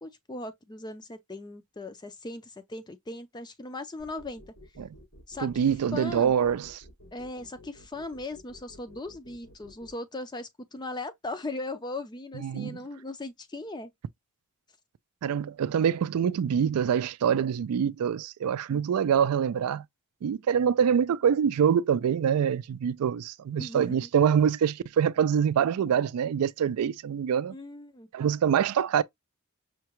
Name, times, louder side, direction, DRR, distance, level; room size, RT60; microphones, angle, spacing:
voice 1, 0.0-4.4 5.3-6.3 7.1-13.9 18.7-18.8 23.6-24.1 27.5-28.1, left 2 dB, 20° left, 0.4 m, -38 dB
sound 1, 4.0-9.9, left 1 dB, 90° left, 2.7 m, -52 dB
voice 2, 5.4-6.8 12.4-12.8 15.2-19.8 20.2-27.5 28.1-29.0, right 8 dB, 80° right, 0.3 m, -25 dB
5.7 x 2.1 x 3.0 m
head